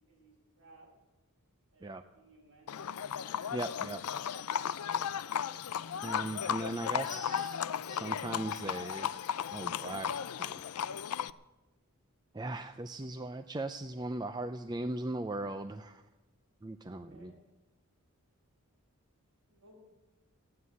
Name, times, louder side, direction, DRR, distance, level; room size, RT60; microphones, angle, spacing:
voice 1, 0.1-0.9 1.7-2.8 4.5-5.5 16.9-17.3 19.5-19.8, right 1 dB, 60° right, -1 dB, 5.7 m, -61 dB
Livestock farm animals working animals, 2.7-11.3, left 8 dB, 85° left, 0.5 m, -35 dB
voice 2, 3.5-4.0 6.0-7.6 7.9-9.2 9.5-10.1 10.4-10.6 12.3-16.0 16.6-17.3, right 2 dB, 20° right, 8 dB, 0.4 m, -38 dB
15.0 x 9.5 x 8.3 m, 1.1 s
head